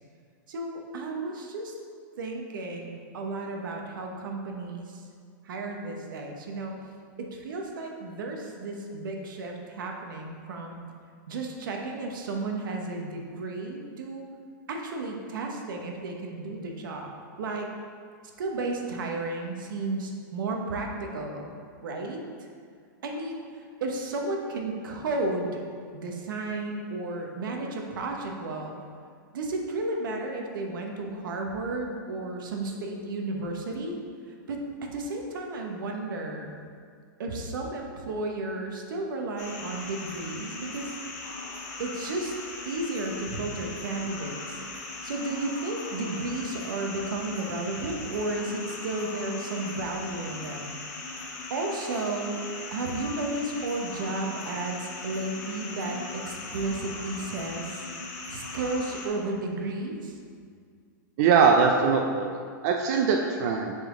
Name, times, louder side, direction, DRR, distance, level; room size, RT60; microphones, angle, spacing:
voice 1, 0.5-1.7 2.2-5.0 5.4-6.8 7.2-10.8 11.3-14.3 14.7-17.1 17.4-17.7 18.4-21.5 21.8-22.2 23.0-23.4 23.8-25.6 25.9-28.7 29.3-34.0 34.5-34.6 34.9-36.5 37.2-40.9 41.8-42.3 42.6-44.6 45.0-50.8 51.5-52.4 52.7-57.8 58.3-60.1, right 2 dB, 80° right, 1 dB, 1.0 m, -33 dB
sound 1, 39.4-59.1, left 3 dB, 55° left, 1.2 m, -39 dB
voice 2, 61.2-62.4 62.6-63.8, right 5 dB, 50° right, 2 dB, 0.4 m, -21 dB
6.7 x 4.1 x 3.7 m, 2.1 s
supercardioid pair, 145°, 11 cm